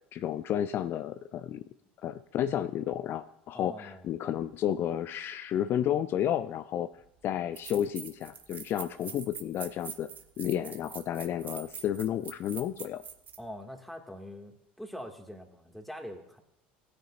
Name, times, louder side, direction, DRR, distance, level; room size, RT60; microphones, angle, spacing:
voice 1, 0.1-1.6 2.0-6.9 7.2-10.1 10.4-13.0, left 10 dB, 45° left, 12 dB, 0.4 m, -31 dB
voice 2, 3.5-4.1 13.4-16.4, equal, ahead, 4 dB, 1.9 m, -43 dB
sound 1, 7.0-7.1 7.6-13.4, right 7 dB, 35° right, 1.1 m, -44 dB
18.5 x 9.6 x 2.5 m, 0.78 s
figure-of-eight pair, 70°, 5 cm